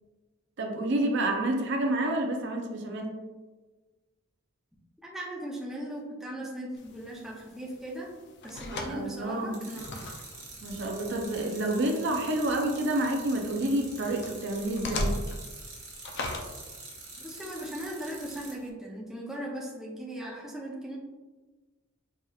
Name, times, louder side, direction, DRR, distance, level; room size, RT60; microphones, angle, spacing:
voice 1, 0.6-3.1 8.7-9.6 10.6-15.1, right 1 dB, 55° right, 2 dB, 0.5 m, -29 dB
voice 2, 5.0-8.1 8.4-10.0 17.2-21.0, right 1 dB, ahead, -4 dB, 0.5 m, -38 dB
sound 1, 6.8-18.7, left 1 dB, 55° left, 0.4 m, -40 dB
sound 2, 9.5-18.5, right 3 dB, 85° right, 1.1 m, -46 dB
4.8 x 2.8 x 2.3 m, 1.2 s
head